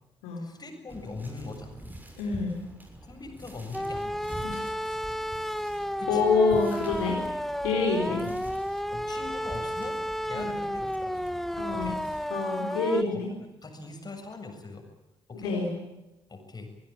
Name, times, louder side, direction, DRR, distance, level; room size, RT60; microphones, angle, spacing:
voice 1, 0.4-1.8 3.0-4.3 6.0-6.2 8.1-8.4 8.9-10.0 10.2-11.1 11.7-12.0 12.7-13.2 13.6-14.9 15.3-15.6 16.3-16.7, left 3 dB, 35° left, 5 dB, 7.4 m, -41 dB
sound 1, 0.9-12.3, right 1 dB, 15° right, 6.9 m, -45 dB
voice 2, 2.2-2.6 4.4-4.6 6.1-7.2 7.6-8.2 10.3-10.6 11.6-11.9 12.3-13.3 15.3-15.7, left 4 dB, 75° left, 0 dB, 4.6 m, -27 dB
sound 2, 3.7-13.0, equal, ahead, 1.1 m, -32 dB
26.0 x 20.0 x 9.0 m, 0.96 s
figure-of-eight pair, 40°, 12 cm